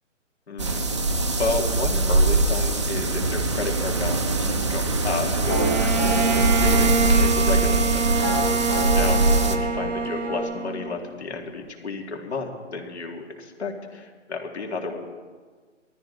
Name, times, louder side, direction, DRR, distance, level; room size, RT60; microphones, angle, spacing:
voice 1, 0.5-0.8 1.1-7.8 8.9-9.2 9.5-15.0, left 4 dB, 60° left, 2 dB, 2.8 m, -32 dB
sound 1, 0.6-9.6, right 2 dB, 25° right, 0.7 m, -22 dB
sound 2, 5.1-10.4, equal, 10° left, 1.1 m, -31 dB
Bowed string instrument, 5.4-11.2, right 5 dB, 70° right, 1.1 m, -26 dB
20.5 x 13.5 x 4.1 m, 1.5 s
hypercardioid pair, 175°, 38 cm